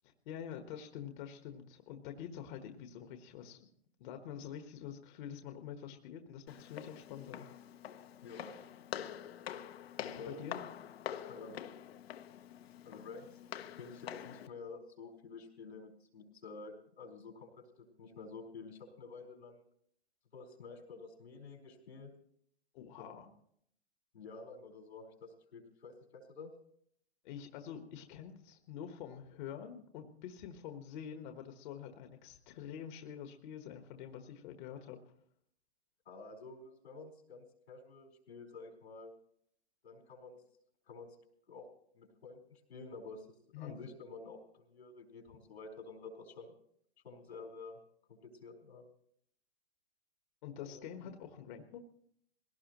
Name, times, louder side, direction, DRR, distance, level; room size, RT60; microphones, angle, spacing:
voice 1, 0.0-3.6 4.0-7.4 9.8-10.6 22.7-23.3 27.2-35.0 43.5-43.7 50.4-51.8, left 9 dB, 50° left, 6 dB, 1.4 m, -47 dB
Walk footsteps, 6.5-14.5, left 10 dB, 70° left, 1.1 m, -46 dB
voice 2, 8.2-8.8 10.0-10.7 11.3-11.7 12.8-19.6 20.3-22.1 23.0-23.1 24.1-26.5 36.0-39.1 39.8-40.4 40.9-41.2 41.5-41.7 41.9-46.5 47.0-47.8 48.1-48.8 50.6-50.9, left 4 dB, 85° left, 1 dB, 4.4 m, -50 dB
20.0 x 17.5 x 3.0 m, 0.67 s
hypercardioid pair, 130°, 31 cm